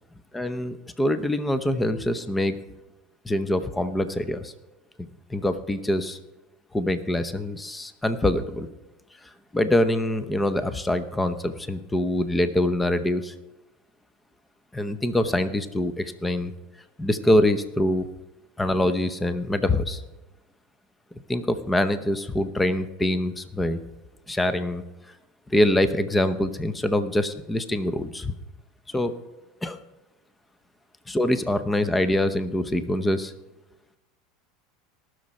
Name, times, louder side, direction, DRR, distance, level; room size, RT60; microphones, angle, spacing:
voice 1, 0.3-2.6 3.2-4.5 5.0-6.2 6.7-8.7 9.2-13.3 14.7-16.5 17.0-18.1 18.6-20.0 21.3-23.8 24.3-24.8 25.5-28.3 28.9-29.1 29.6-29.8 31.1-33.3, left 1 dB, 10° left, 11 dB, 0.8 m, -24 dB
19.0 x 6.4 x 4.3 m, 1.0 s
hypercardioid pair, 105°, 0 cm